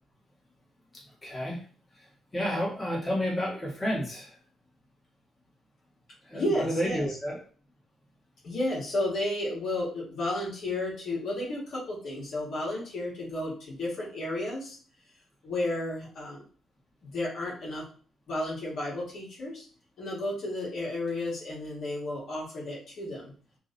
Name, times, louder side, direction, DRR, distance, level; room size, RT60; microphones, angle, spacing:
voice 1, 1.2-1.6 2.3-4.4 6.2-7.4, equal, 20° left, -5 dB, 1.9 m, -30 dB
voice 2, 6.3-7.2 8.4-14.8 15.4-16.4 17.0-17.8 18.3-19.7 20.0-23.3, left 1 dB, 65° left, -5 dB, 2.2 m, -32 dB
3.7 x 3.2 x 4.1 m, 0.41 s
cardioid pair, 90°, 0 cm